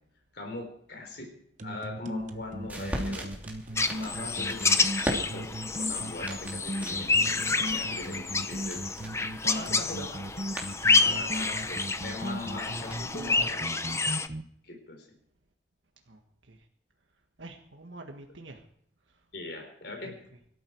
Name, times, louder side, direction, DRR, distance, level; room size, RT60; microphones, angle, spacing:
voice 1, 0.3-1.3 1.6-3.3 4.0-9.0 9.4-10.4 11.0-14.0 14.6-15.1 19.3-20.2, left 2 dB, 60° left, 2 dB, 4.2 m, -41 dB
sound 1, 1.6-14.4, right 1 dB, 40° right, 1.1 m, -37 dB
sound 2, 2.2-13.4, equal, 10° right, 2.8 m, -41 dB
sound 3, 3.8-14.3, left 3 dB, 15° left, 0.7 m, -29 dB
voice 2, 16.1-16.7 17.4-18.6 19.1-19.2 20.0-20.4, right 2 dB, 90° right, 3 dB, 1.7 m, -48 dB
24.0 x 13.0 x 4.7 m, 0.71 s
head